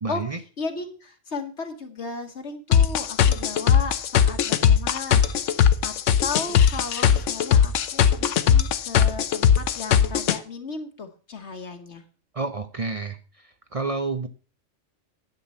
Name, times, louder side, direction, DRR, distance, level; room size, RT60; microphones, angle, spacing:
voice 1, 0.0-0.4 12.3-14.3, right 4 dB, 35° right, 8 dB, 0.7 m, -30 dB
voice 2, 0.6-5.9 6.2-12.0, left 4 dB, 65° left, 5 dB, 1.5 m, -35 dB
sound 1, 2.7-10.4, left 8 dB, 80° left, 1.1 m, -19 dB
10.5 x 7.5 x 5.5 m, 0.37 s
omnidirectional pair, 1.3 m